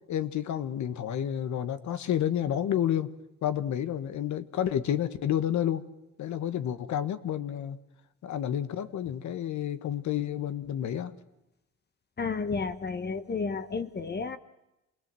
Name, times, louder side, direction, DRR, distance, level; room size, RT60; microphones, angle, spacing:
voice 1, 0.1-3.1 3.4-5.8 6.2-7.8 8.2-11.1, left 10 dB, 70° left, 1.4 m, -30 dB
voice 2, 12.2-14.4, left 4 dB, 35° left, 1.1 m, -32 dB
27.5 x 19.0 x 7.7 m
cardioid pair, 90°, 30 cm